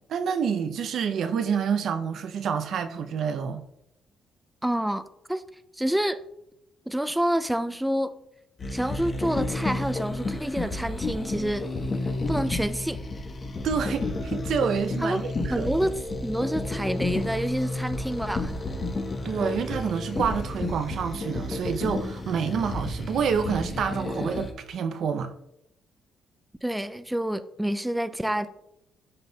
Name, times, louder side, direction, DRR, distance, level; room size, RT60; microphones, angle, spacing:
voice 1, 0.1-3.6 13.6-15.7 19.2-25.3, right 6 dB, 65° right, 0.6 m, -28 dB
voice 2, 4.6-5.4 5.8-6.2 6.9-8.1 8.7-11.6 12.3-13.0 15.0-15.2 15.5-15.9 16.2-18.5 26.6-28.5, right 1 dB, 5° right, 0.4 m, -28 dB
sound 1, 8.6-24.5, left 2 dB, 35° left, 1.0 m, -31 dB
12.0 x 4.1 x 2.3 m
cardioid pair, 90°, 0 cm